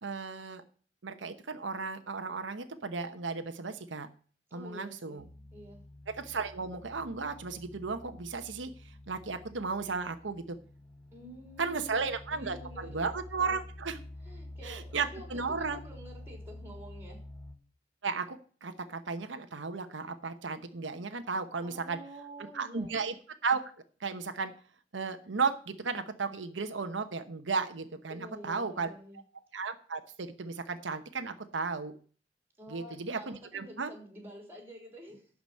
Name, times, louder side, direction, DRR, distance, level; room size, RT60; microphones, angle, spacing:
voice 1, 0.0-0.6 1.0-4.1 4.5-5.2 6.1-8.7 9.1-10.6 11.6-14.0 14.6-15.8 18.0-22.0 22.5-23.1 23.4-23.6 24.0-24.5 24.9-28.9 29.5-31.9 32.7-33.9, right 4 dB, 85° right, 8 dB, 1.0 m, -34 dB
voice 2, 4.5-5.2 5.5-5.8 11.1-13.0 14.2-17.2 21.6-22.9 28.1-29.2 32.6-35.2, right 1 dB, 15° right, 2 dB, 3.7 m, -49 dB
sound 1, 5.2-17.6, left 1 dB, 5° left, 1.1 m, -49 dB
11.5 x 5.0 x 8.3 m, 0.42 s
head